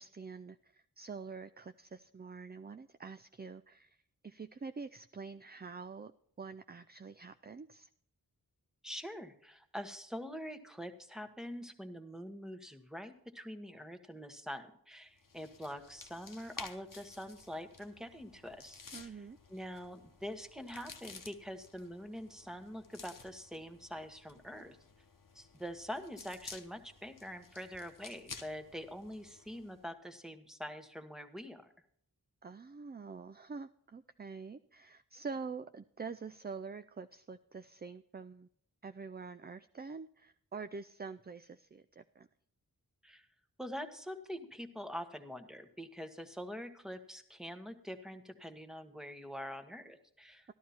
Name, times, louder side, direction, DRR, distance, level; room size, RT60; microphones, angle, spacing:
voice 1, 0.0-4.0 4.2-6.1 6.4-7.9 18.9-19.4 32.4-38.5 38.8-42.3, right 4 dB, 25° right, 11 dB, 0.4 m, -46 dB
voice 2, 8.8-19.2 19.5-24.8 25.3-31.7 43.0-43.3 43.6-50.5, equal, ahead, 8 dB, 1.3 m, -45 dB
sound 1, 15.2-29.8, left 4 dB, 55° left, 1.0 m, -53 dB
13.0 x 12.5 x 4.3 m, 0.65 s
wide cardioid pair, 55°, 38 cm